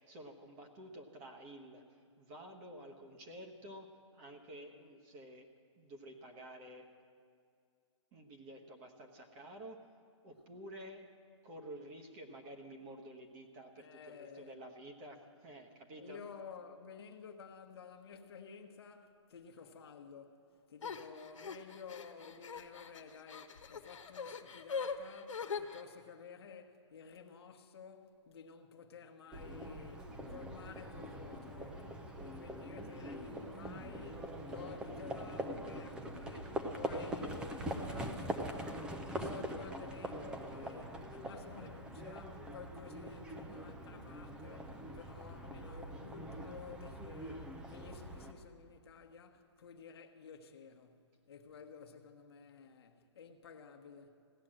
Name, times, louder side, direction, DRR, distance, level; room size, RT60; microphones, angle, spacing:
voice 1, 0.0-5.5 5.8-6.9 8.1-9.8 10.2-11.1 11.4-16.2, right 1 dB, 25° right, 1.2 m, -51 dB
voice 2, 13.8-14.7 16.0-54.3, left 6 dB, 55° left, 1.1 m, -53 dB
sound 1, 20.8-25.8, left 5 dB, 90° left, 1.1 m, -42 dB
Livestock farm animals working animals, 29.3-48.3, right 1 dB, 5° right, 0.5 m, -43 dB
16.5 x 10.5 x 7.6 m
hypercardioid pair, 160°, 16 cm